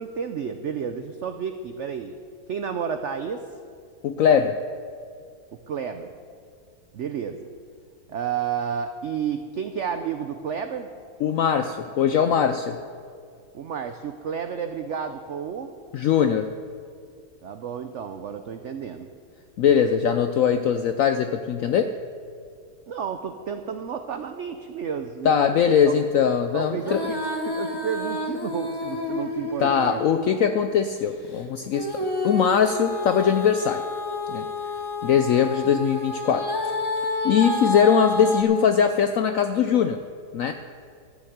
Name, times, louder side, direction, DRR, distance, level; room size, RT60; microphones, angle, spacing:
voice 1, 0.0-2.1 2.5-3.5 5.7-6.1 6.9-7.5 8.1-10.9 13.5-15.7 17.4-19.1 22.9-26.0 26.5-27.2 27.5-30.0, right 7 dB, 75° right, 7 dB, 0.6 m, -31 dB
voice 2, 4.0-4.6 11.2-12.8 15.9-16.4 19.6-21.9 25.2-27.0 29.6-31.9 32.2-33.8 34.3-34.5 35.0-36.5 37.2-40.0 40.3-40.5, left 7 dB, 75° left, 8 dB, 0.7 m, -21 dB
Female singing, 26.8-30.5 31.7-38.4, left 2 dB, 15° left, 1.0 m, -29 dB
13.0 x 7.2 x 7.9 m, 2.3 s
omnidirectional pair, 1.9 m